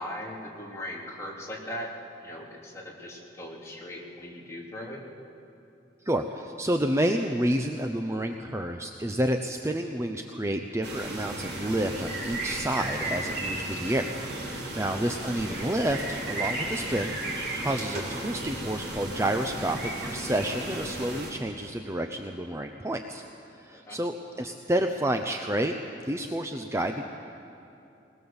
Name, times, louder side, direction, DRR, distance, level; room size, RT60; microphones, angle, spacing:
voice 1, 0.0-1.9 2.2-5.0 23.9-24.0, left 1 dB, 15° left, -4 dB, 3.3 m, -39 dB
voice 2, 6.0-23.2 23.5-25.8 26.0-27.0, right 1 dB, 15° right, 5 dB, 0.7 m, -29 dB
sound 1, 10.8-21.3, right 1 dB, 65° right, 4.4 m, -34 dB
20.5 x 20.5 x 7.2 m, 2.8 s
head